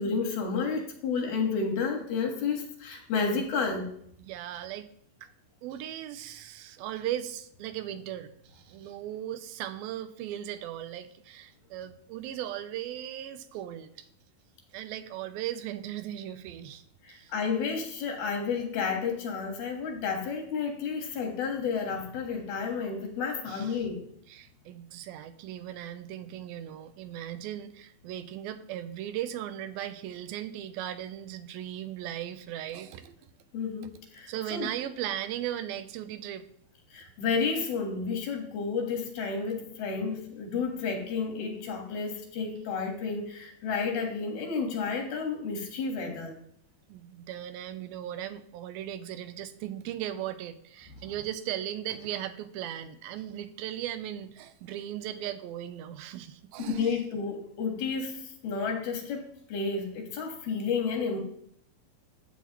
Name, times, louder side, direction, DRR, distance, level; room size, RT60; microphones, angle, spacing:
voice 1, 0.0-3.9 17.0-24.0 33.5-34.7 36.9-46.4 56.8-58.2 58.4-61.2, left 5 dB, 80° left, 2 dB, 3.5 m, -31 dB
voice 2, 4.2-4.9 5.2-5.3 5.6-14.1 14.7-16.8 17.1-17.3 23.5-23.9 24.3-33.2 34.3-36.4 46.9-57.0, right 11 dB, 85° right, 10 dB, 2.5 m, -37 dB
12.5 x 8.2 x 3.0 m, 0.68 s
omnidirectional pair, 4.3 m